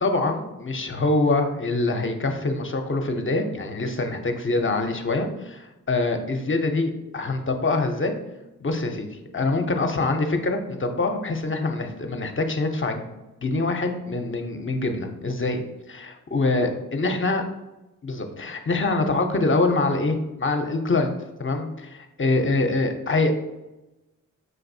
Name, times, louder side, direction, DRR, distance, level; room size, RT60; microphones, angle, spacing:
voice 1, 0.0-8.1 8.6-9.1 9.3-15.6 15.9-17.4 18.0-21.1 21.4-23.3, left 2 dB, 40° left, 5 dB, 0.6 m, -25 dB
6.1 x 2.6 x 2.6 m, 0.99 s
cardioid pair, 45°, 32 cm